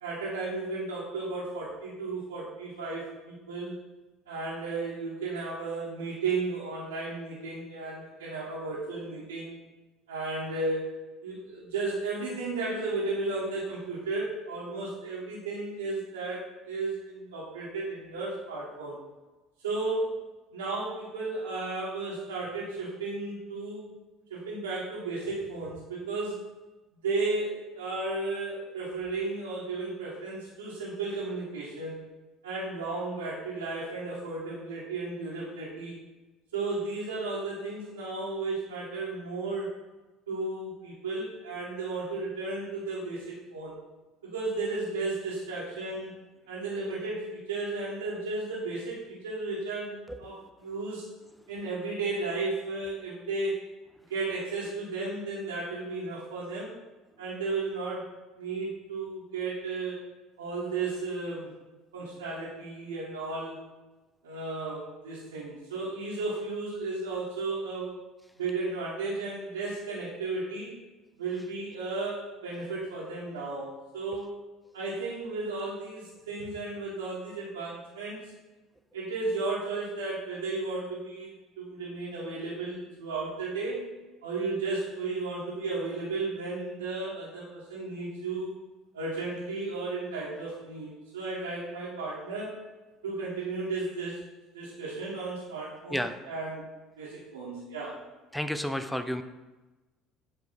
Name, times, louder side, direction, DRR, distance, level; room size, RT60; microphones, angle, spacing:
voice 1, 0.0-3.7 4.3-9.5 10.1-10.9 11.2-19.0 19.6-20.1 20.5-23.8 24.3-26.4 27.0-32.0 32.4-36.0 36.5-39.7 40.3-43.7 44.2-46.2 46.5-51.1 51.5-53.6 54.1-56.7 57.2-58.0 58.4-60.0 60.4-61.5 61.9-63.6 64.2-67.9 68.4-70.8 71.2-74.3 74.7-78.3 78.9-83.8 84.2-88.6 88.9-92.6 93.0-94.2 94.5-96.7 97.0-98.0, right 3 dB, 80° right, -8 dB, 1.3 m, -34 dB
voice 2, 98.3-99.2, equal, 5° left, 10 dB, 0.5 m, -31 dB
7.9 x 3.3 x 4.2 m, 1.2 s
figure-of-eight pair, 60°, 0 cm